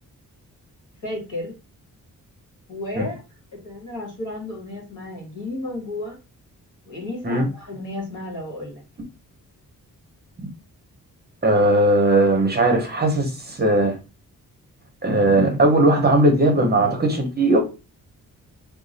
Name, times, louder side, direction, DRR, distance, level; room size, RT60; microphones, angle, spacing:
voice 1, 1.0-1.6 2.7-3.2 3.6-6.2 6.9-8.8, left 1 dB, 60° left, -2 dB, 1.8 m, -32 dB
voice 2, 11.4-14.0 15.0-17.6, right 1 dB, 30° right, 3 dB, 0.7 m, -18 dB
3.0 x 2.3 x 3.9 m, 0.31 s
wide cardioid pair, 145°, 35 cm